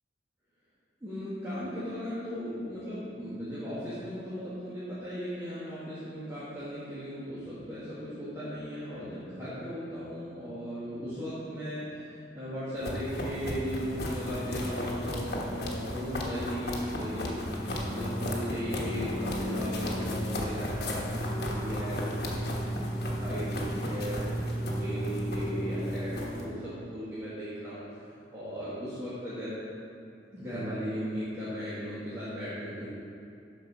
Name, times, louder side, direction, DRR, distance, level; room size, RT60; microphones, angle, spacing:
voice 1, 1.0-22.9 23.2-24.4 24.7-28.0 28.3-29.5 30.3-32.9, equal, 15° right, -12 dB, 1.6 m, -37 dB
sound 1, 12.8-26.5, equal, 55° left, 1.2 m, -33 dB
12.0 x 4.5 x 4.9 m, 2.7 s
head